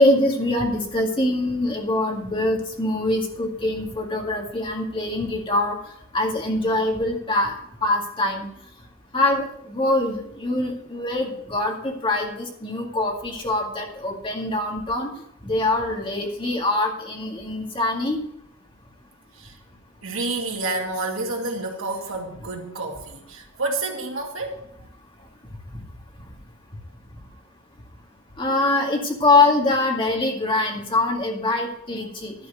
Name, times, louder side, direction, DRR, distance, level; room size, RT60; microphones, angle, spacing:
voice 1, 0.0-5.8 6.1-8.5 9.1-15.1 15.4-18.2 28.4-32.3, left 2 dB, 25° left, 1 dB, 2.0 m, -23 dB
voice 2, 20.0-24.6, right 2 dB, 75° right, 1 dB, 2.1 m, -29 dB
12.0 x 4.6 x 7.9 m, 0.73 s
head